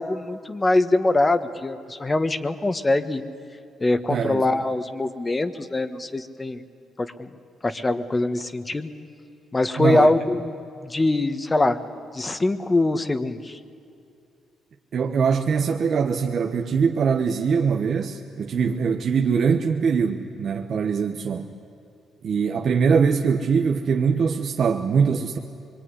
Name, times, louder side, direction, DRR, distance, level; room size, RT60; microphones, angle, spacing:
voice 1, 0.0-3.2 3.8-6.6 7.0-7.3 7.6-8.9 9.5-10.5 10.8-11.8 12.1-13.6, left 2 dB, 20° left, 10 dB, 1.5 m, -23 dB
voice 2, 4.1-4.6 9.8-10.1 14.9-21.5 22.2-25.4, right 6 dB, 55° right, 3 dB, 1.4 m, -22 dB
25.0 x 23.0 x 9.8 m, 2.6 s
cardioid pair, 90°, 0 cm